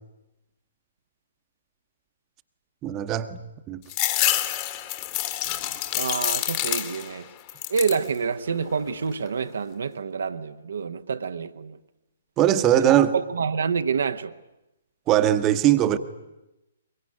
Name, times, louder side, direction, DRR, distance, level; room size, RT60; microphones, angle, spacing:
voice 1, 2.8-3.4 3.7-3.8 12.4-13.1 15.1-16.0, right 11 dB, 25° right, 1.1 m, -20 dB
sound 1, 3.9-7.2 7.5-8.1 8.6-9.3, left 14 dB, 30° left, 1.9 m, -27 dB
voice 2, 5.9-7.3 7.7-11.8 12.8-12.9 13.1-14.3, right 5 dB, 60° right, 1.0 m, -27 dB
23.0 x 23.0 x 9.6 m
figure-of-eight pair, 125°, 0 cm